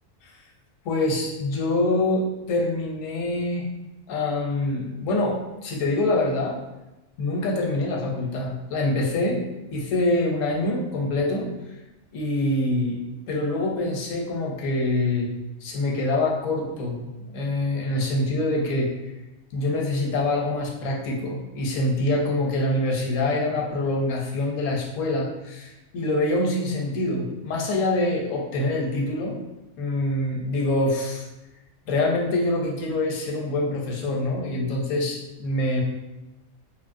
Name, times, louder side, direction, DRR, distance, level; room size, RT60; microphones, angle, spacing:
voice 1, 0.8-3.7 4.1-6.6 7.2-9.4 9.7-11.5 12.1-15.3 15.6-18.9 19.5-29.4 29.8-31.2 31.9-35.8, left 2 dB, 85° left, -1 dB, 1.0 m, -25 dB
2.9 x 2.3 x 2.5 m, 1.0 s
omnidirectional pair, 1.3 m